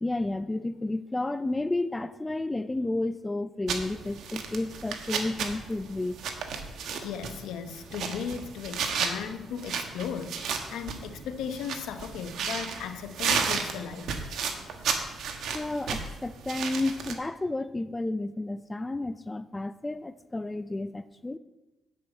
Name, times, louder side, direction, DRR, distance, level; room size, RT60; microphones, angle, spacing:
voice 1, 0.0-6.2 15.5-21.4, left 2 dB, 15° left, 12 dB, 0.4 m, -31 dB
sound 1, 3.7-17.1, right 6 dB, 75° right, 1.3 m, -34 dB
voice 2, 7.0-14.2, left 7 dB, 85° left, 8 dB, 1.0 m, -36 dB
10.0 x 5.6 x 8.1 m, 1.1 s
cardioid pair, 90°, 0 cm